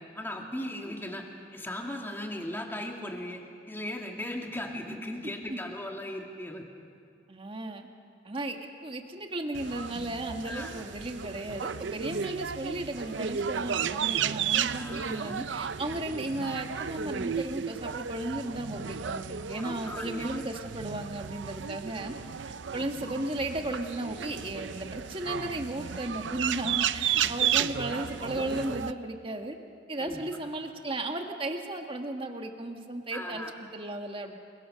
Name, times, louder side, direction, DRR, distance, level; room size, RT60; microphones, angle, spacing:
voice 1, 0.1-1.3 1.5-6.7 10.4-10.7 14.7-15.3 19.5-20.3 27.2-27.5 30.0-30.2 33.1-33.5, left 1 dB, 10° left, 1 dB, 2.5 m, -38 dB
voice 2, 7.3-7.9 8.2-22.1 22.7-29.6 29.9-34.3, right 1 dB, 30° right, 4 dB, 1.6 m, -35 dB
sound 1, 9.5-28.9, right 8 dB, 80° right, 0.6 m, -33 dB
29.0 x 22.5 x 6.5 m, 2.3 s
head